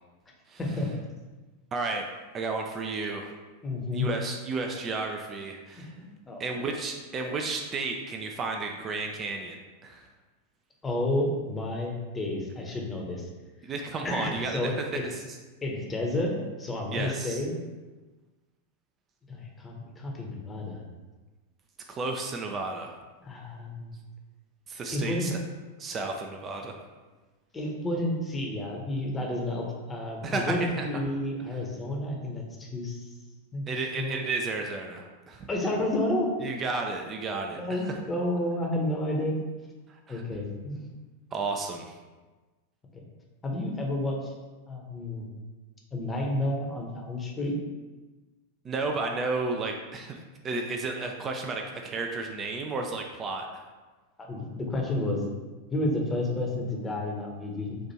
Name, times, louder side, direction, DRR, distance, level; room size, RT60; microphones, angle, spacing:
voice 1, 0.6-0.9 3.6-4.1 5.7-6.5 10.8-13.3 14.0-14.7 15.6-16.3 16.6-17.5 19.3-20.8 23.2-23.9 24.9-25.3 27.5-33.1 33.5-34.2 35.5-36.3 37.5-39.4 40.1-40.8 43.4-44.3 44.7-45.3 45.9-47.5 54.2-55.2 55.7-57.8, left 1 dB, 15° left, 0 dB, 0.8 m, -31 dB
voice 2, 1.7-2.1 2.3-3.3 3.9-6.0 6.4-10.1 13.6-15.4 16.9-17.4 21.9-22.9 24.7-25.4 25.8-26.8 30.2-30.9 33.7-35.5 36.4-37.6 39.9-40.2 41.3-42.0 48.6-53.5, right 3 dB, 25° right, 3 dB, 0.4 m, -32 dB
4.4 x 2.5 x 4.2 m, 1.3 s
figure-of-eight pair, 90°, 0 cm